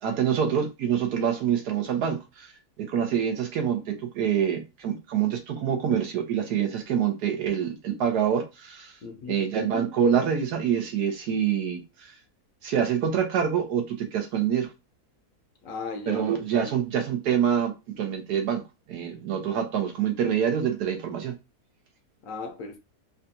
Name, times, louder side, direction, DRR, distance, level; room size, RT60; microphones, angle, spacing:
voice 1, 0.0-9.0 9.3-12.1 12.6-14.7 16.1-18.6 18.9-21.3, right 8 dB, 90° right, 1.4 m, -26 dB
voice 2, 9.0-9.4 15.6-16.2 16.6-16.7 22.2-22.8, left 4 dB, 65° left, 0.9 m, -36 dB
4.0 x 2.2 x 2.7 m
omnidirectional pair, 1.7 m